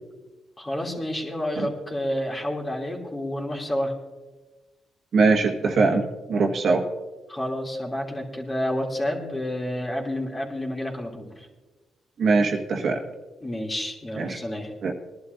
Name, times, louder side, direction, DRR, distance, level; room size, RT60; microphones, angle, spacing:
voice 1, 0.6-3.9 7.3-11.5 13.4-14.7, left 1 dB, 20° left, -1 dB, 3.0 m, -29 dB
voice 2, 5.1-6.8 12.2-13.0 14.2-14.4 14.8-14.9, right 4 dB, 55° right, 1 dB, 1.7 m, -22 dB
21.0 x 11.5 x 2.7 m, 1.2 s
cardioid pair, 90°, 0 cm